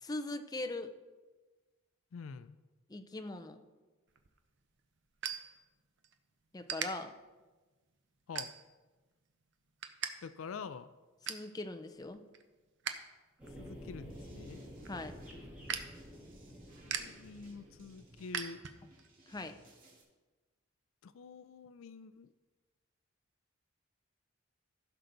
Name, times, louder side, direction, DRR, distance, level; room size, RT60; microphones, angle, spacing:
voice 1, 0.0-0.9 2.9-3.6 6.5-7.1 11.3-12.2 14.9-15.2 19.3-19.6, left 2 dB, 20° left, 8 dB, 0.6 m, -40 dB
voice 2, 2.1-2.6 8.3-8.5 10.2-10.9 13.6-14.6 16.8-18.6 21.0-22.3, left 5 dB, 80° left, 13 dB, 0.4 m, -46 dB
sound 1, 4.1-6.1 6.6-6.9 7.4-7.7 8.3-8.9 9.3-10.1 10.4-10.5 10.9-11.5 12.0-13.1 13.4-19.1, right 8 dB, 60° right, 0.7 m, -42 dB
sound 2, 13.4-18.3, equal, 5° right, 3.0 m, -50 dB
sound 3, 14.1-20.0, right 2 dB, 45° right, 2.2 m, -63 dB
15.5 x 6.5 x 3.9 m, 1.3 s
head